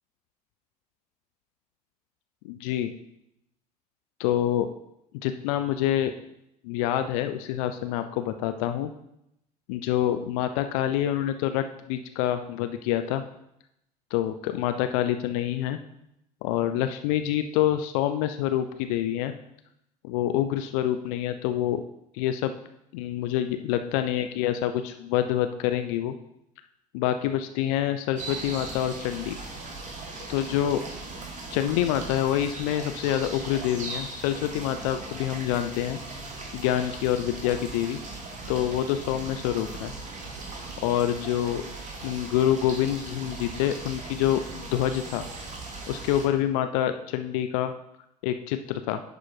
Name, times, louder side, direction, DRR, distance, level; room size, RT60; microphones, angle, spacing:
voice 1, 2.4-2.9 4.2-4.7 5.2-6.1 6.6-8.9 9.7-13.2 14.1-15.8 16.4-19.3 20.0-21.8 22.1-22.5 22.9-26.1 26.9-29.3 30.3-30.8 31.5-36.0 36.5-38.0 38.5-39.9 40.8-41.6 42.0-45.2 45.9-47.7 48.2-49.0, left 11 dB, 60° left, 8 dB, 0.6 m, -26 dB
sound 1, 28.2-46.3, right 3 dB, 35° right, 1.9 m, -39 dB
10.5 x 4.2 x 4.7 m, 0.80 s
figure-of-eight pair, 60°, 21 cm